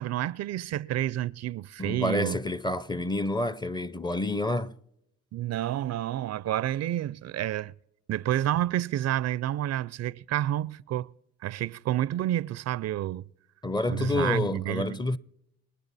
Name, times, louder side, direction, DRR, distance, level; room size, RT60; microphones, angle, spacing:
voice 1, 0.0-2.4 5.3-7.7 8.1-11.1 11.4-13.3 13.9-15.0, right 13 dB, 60° right, 0.4 m, -29 dB
voice 2, 1.8-4.7 13.6-15.2, left 2 dB, 15° left, 0.5 m, -28 dB
27.5 x 9.5 x 4.1 m
cardioid pair, 90°, 30 cm